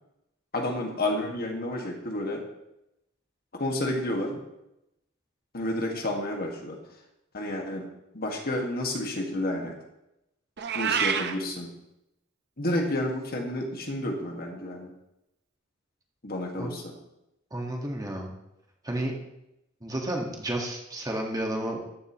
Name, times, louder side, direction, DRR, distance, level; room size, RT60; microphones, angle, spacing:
voice 1, 0.5-2.4 3.5-4.4 5.5-6.8 7.3-7.9 8.1-9.8 10.7-11.7 12.6-14.9 16.2-16.9, left 1 dB, 45° left, 1 dB, 1.8 m, -30 dB
Meow, 10.6-11.3, right 6 dB, 55° right, 0.8 m, -27 dB
voice 2, 17.5-18.3 18.8-19.2 19.8-21.8, right 1 dB, 15° right, 0 dB, 1.6 m, -31 dB
14.0 x 10.5 x 3.1 m, 0.87 s
head